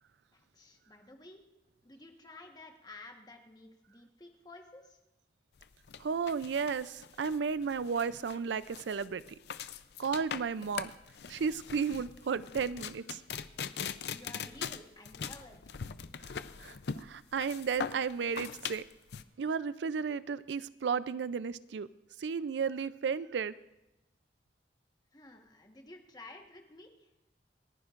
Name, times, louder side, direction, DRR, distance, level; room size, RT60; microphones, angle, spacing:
voice 1, 0.3-1.4 1.8-5.0 14.1-15.9 25.1-27.1, left 2 dB, 20° left, 3 dB, 1.3 m, -52 dB
sound 1, 5.6-19.2, left 7 dB, 70° left, 0.5 m, -41 dB
voice 2, 6.0-9.2 10.0-10.9 11.3-13.2 16.6-16.8 17.0-18.8 19.4-21.9 22.2-23.5, right 6 dB, 85° right, 16 dB, 0.4 m, -33 dB
28.0 x 11.0 x 2.5 m, 0.93 s
head